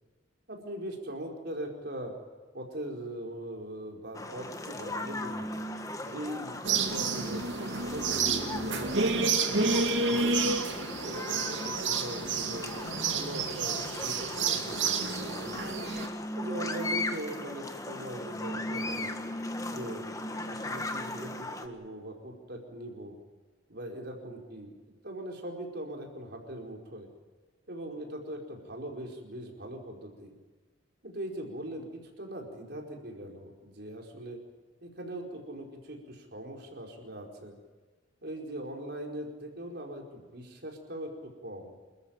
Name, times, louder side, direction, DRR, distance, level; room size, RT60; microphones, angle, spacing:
voice 1, 0.5-2.1 2.5-5.5 6.0-7.4 7.8-10.4 11.0-12.7 13.1-15.8 16.4-19.1 19.6-20.0 20.4-23.2 23.7-27.1 27.7-30.4 31.0-34.4 34.8-37.5 38.2-41.7, right 1 dB, 60° right, 2 dB, 4.8 m, -41 dB
sound 1, 4.1-21.7, left 1 dB, 20° left, 1.6 m, -38 dB
sound 2, 6.6-16.1, right 4 dB, 80° right, 2.4 m, -30 dB
28.0 x 14.0 x 8.9 m, 1.4 s
head